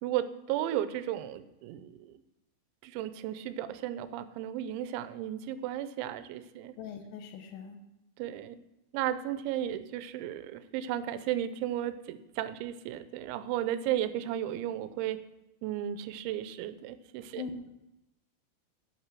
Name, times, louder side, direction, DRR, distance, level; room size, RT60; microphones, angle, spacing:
voice 1, 0.0-2.1 2.8-6.7 8.2-8.6 8.9-15.2 15.6-17.4, right 11 dB, 80° right, 12 dB, 2.8 m, -34 dB
voice 2, 6.8-7.8 17.4-17.5, left 6 dB, 85° left, 6 dB, 3.7 m, -41 dB
8.8 x 8.1 x 6.0 m, 0.90 s
omnidirectional pair, 5.7 m